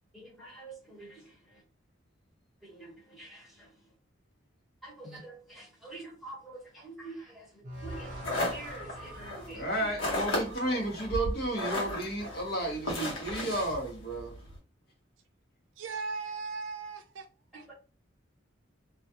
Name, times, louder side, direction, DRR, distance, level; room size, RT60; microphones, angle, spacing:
voice 1, 0.1-1.6 2.6-3.7 4.8-9.9 17.5-17.7, right 2 dB, ahead, 1.1 m, -47 dB
sound 1, 7.6-10.8, right 1 dB, 40° right, 0.9 m, -46 dB
sound 2, 7.8-14.6, left 1 dB, 75° left, 1.0 m, -35 dB
voice 2, 9.5-14.3, right 1 dB, 50° left, 0.9 m, -32 dB
voice 3, 15.8-17.3 17.5-17.7, right 4 dB, 70° right, 0.4 m, -38 dB
2.4 x 2.2 x 2.7 m
head